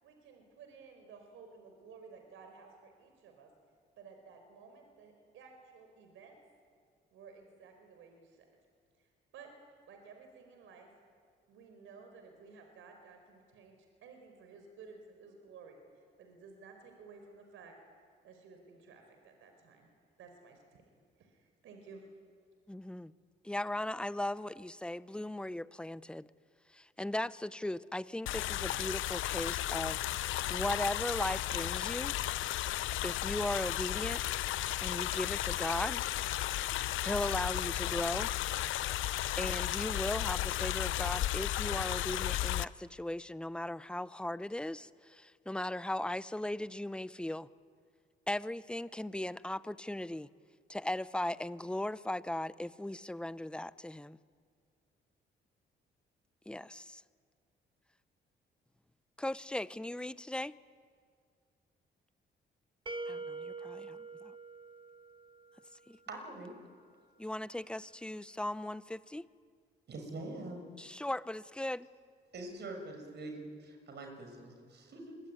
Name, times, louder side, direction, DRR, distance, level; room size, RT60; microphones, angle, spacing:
voice 1, 0.0-3.5 4.0-6.4 7.1-8.5 9.0-9.5 9.9-10.9 11.5-15.8 16.2-17.7 18.2-19.9 20.2-20.8 21.2-22.1, right 5 dB, 85° right, 4 dB, 4.7 m, -55 dB
voice 2, 22.7-23.1 23.4-26.3 26.7-30.0 30.5-32.1 33.0-34.2 34.8-36.0 37.0-38.3 39.4-47.5 48.3-50.3 50.7-54.2 56.5-57.0 59.2-60.5 63.1-64.3 65.9-66.0 67.2-69.2 70.8-71.9, left 1 dB, 5° left, 16 dB, 0.8 m, -37 dB
sound 1, 28.3-42.7, left 14 dB, 80° left, 0.6 m, -34 dB
sound 2, 62.9-65.7, right 3 dB, 25° right, 1.3 m, -44 dB
voice 3, 66.1-66.5 69.9-70.7 72.3-75.2, right 2 dB, 60° right, 4 dB, 6.9 m, -44 dB
26.5 x 23.5 x 9.7 m, 2.1 s
cardioid pair, 90°, 20 cm